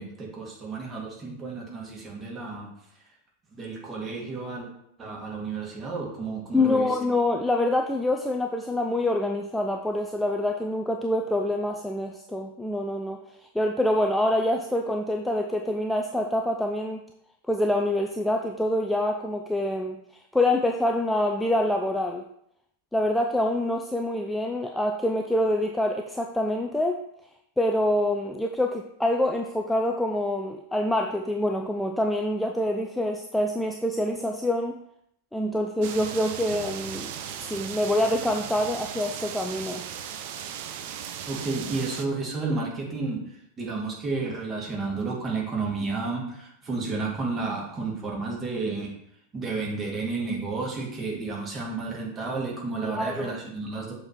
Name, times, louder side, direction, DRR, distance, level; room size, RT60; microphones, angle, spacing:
voice 1, 0.0-2.7 3.5-4.7 5.0-6.9 41.3-43.2 43.6-48.9 49.3-53.9, right 3 dB, 20° right, -3 dB, 2.1 m, -31 dB
voice 2, 6.5-13.2 13.5-17.0 17.5-20.0 20.3-22.2 22.9-27.0 27.6-34.8 35.3-37.1 37.4-39.9 52.8-53.4, left 1 dB, 5° left, 2 dB, 0.4 m, -26 dB
sound 1, 35.8-42.1, right 8 dB, 50° right, 0.6 m, -37 dB
6.5 x 4.5 x 4.3 m, 0.74 s
figure-of-eight pair, 90°, 0 cm